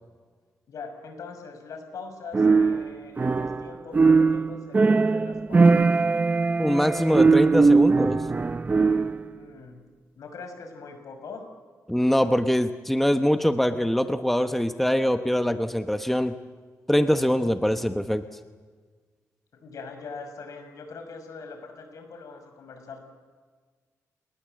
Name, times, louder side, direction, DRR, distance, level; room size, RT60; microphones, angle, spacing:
voice 1, 0.7-5.9 9.3-9.8 10.2-11.4 17.4-17.8 19.6-23.0, left 4 dB, 75° left, 6 dB, 5.7 m, -42 dB
sound 1, 2.3-3.7 3.9-9.2, right 4 dB, 25° right, 0.7 m, -20 dB
voice 2, 6.6-8.2 11.9-16.3 16.9-18.2, equal, 5° left, 8 dB, 1.0 m, -23 dB
30.0 x 19.5 x 7.7 m, 1.5 s
cardioid pair, 105°, 6 cm